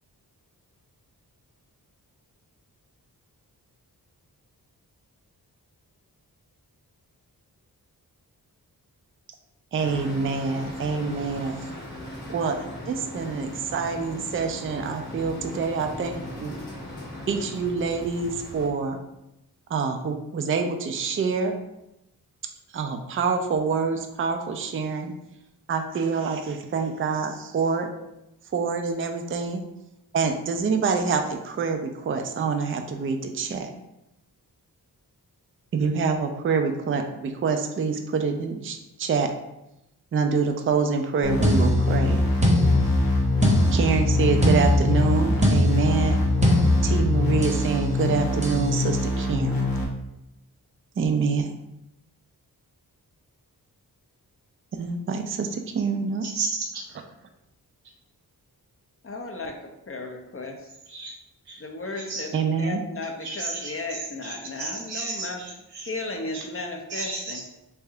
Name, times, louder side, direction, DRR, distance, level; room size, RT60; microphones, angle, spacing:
voice 1, 9.7-11.7 12.3-12.6 12.8-16.6 17.3-19.0 19.7-21.6 22.7-25.1 25.7-27.9 28.5-29.6 30.1-33.7 35.7-39.3 40.1-42.3 43.7-46.2 46.8-49.7 51.0-51.6 54.7-56.2 62.3-62.8, right 5 dB, 35° right, 5 dB, 0.4 m, -26 dB
sound 1, 9.8-18.7, left 1 dB, 85° left, 1.5 m, -38 dB
sound 2, 41.2-49.8, left 2 dB, 60° left, 1.0 m, -26 dB
sound 3, 41.4-47.7 48.4-48.7, left 1 dB, 20° right, 0.9 m, -22 dB
voice 2, 56.2-56.8 60.9-61.1 61.5-61.6 61.9-62.2 63.2-65.9 66.3-66.4 66.9-67.4, right 3 dB, 85° right, -3 dB, 1.1 m, -33 dB
voice 3, 59.0-60.7 61.6-65.4 65.9-67.4, left 2 dB, 35° left, 3 dB, 0.6 m, -35 dB
3.4 x 2.6 x 3.4 m, 0.88 s
cardioid pair, 55°, 38 cm